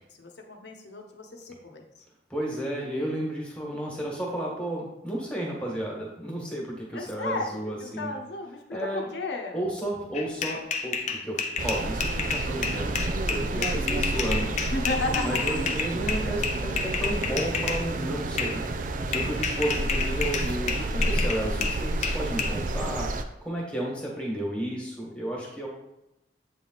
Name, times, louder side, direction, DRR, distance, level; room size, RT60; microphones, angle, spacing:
voice 1, 0.2-2.0 6.9-9.6 14.7-15.3 20.7-21.2, left 2 dB, 70° left, 2 dB, 0.9 m, -34 dB
voice 2, 2.3-8.1 8.7-9.1 9.5-14.6 15.2-18.6 19.1-25.7, right 1 dB, 5° left, -3 dB, 1.5 m, -32 dB
sound 1, 10.1-17.8 18.4-18.6 19.1-22.5, left 5 dB, 40° left, 0.6 m, -30 dB
sound 2, 11.6-23.2, right 2 dB, 45° right, 0.4 m, -30 dB
8.1 x 3.6 x 4.0 m, 0.91 s
head